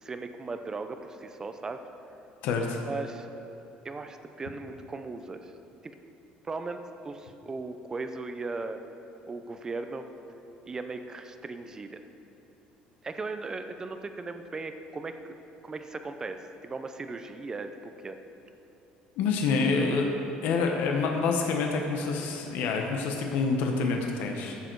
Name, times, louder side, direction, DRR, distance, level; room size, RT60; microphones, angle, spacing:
voice 1, 0.0-1.8 2.9-3.3 3.8-5.5 6.4-8.8 9.3-10.0 10.7-12.0 13.0-15.3 15.6-18.2, right 3 dB, 20° right, 8 dB, 0.6 m, -37 dB
voice 2, 2.4-2.8 19.2-20.1 20.4-24.6, left 4 dB, 70° left, 2 dB, 1.0 m, -27 dB
14.5 x 6.6 x 4.7 m, 2.9 s
cardioid pair, 145°, 3 cm